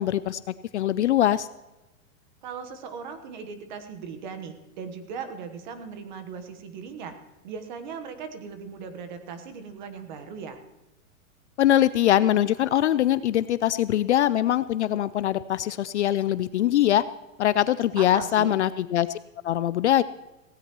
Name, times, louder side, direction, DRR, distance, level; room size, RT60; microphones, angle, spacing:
voice 1, 0.0-1.5 11.6-17.1 17.4-19.2 19.4-20.0, left 12 dB, 60° left, 15 dB, 0.5 m, -22 dB
voice 2, 2.4-7.1 7.4-10.6 18.0-18.5, right 6 dB, 35° right, 8 dB, 1.2 m, -38 dB
17.0 x 16.5 x 3.1 m, 1.1 s
supercardioid pair, 180°, 41 cm